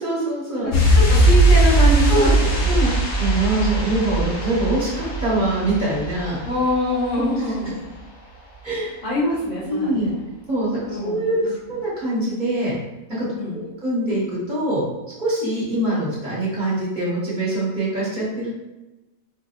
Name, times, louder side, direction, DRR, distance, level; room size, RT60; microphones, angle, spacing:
voice 1, 0.0-0.7 2.1-2.3 2.7-2.9 3.1-6.4 8.6-9.0 9.6-10.1 10.5-12.7 13.1-13.3 13.8-14.8 15.2-18.5, right 1 dB, 35° right, -8 dB, 1.2 m, -23 dB
voice 2, 0.6-2.7 6.4-7.8 9.0-10.2 10.8-11.2 13.3-13.6, left 1 dB, 65° left, -7 dB, 1.4 m, -24 dB
sound 1, 0.7-7.2 7.5-7.6, right 1 dB, 85° left, 1.4 m, -19 dB
4.6 x 2.5 x 2.3 m, 1.1 s
omnidirectional pair, 1.4 m